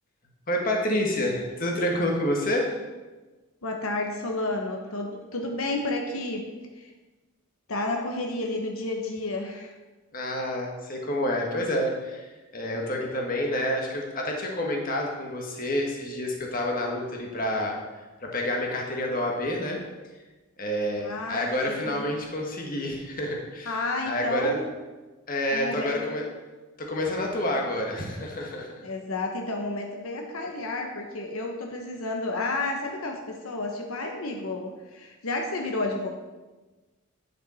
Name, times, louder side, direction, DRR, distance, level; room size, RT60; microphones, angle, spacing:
voice 1, 0.5-2.7 10.1-17.8 18.2-19.8 20.6-23.8 24.1-24.6 25.3-26.3 26.8-28.7, left 1 dB, 40° left, 0 dB, 1.5 m, -28 dB
voice 2, 3.6-6.4 6.8-6.9 7.7-9.7 21.0-22.1 23.7-24.6 25.5-25.9 28.8-36.1, left 2 dB, 85° left, 2 dB, 1.2 m, -31 dB
9.8 x 6.8 x 4.3 m, 1.2 s
head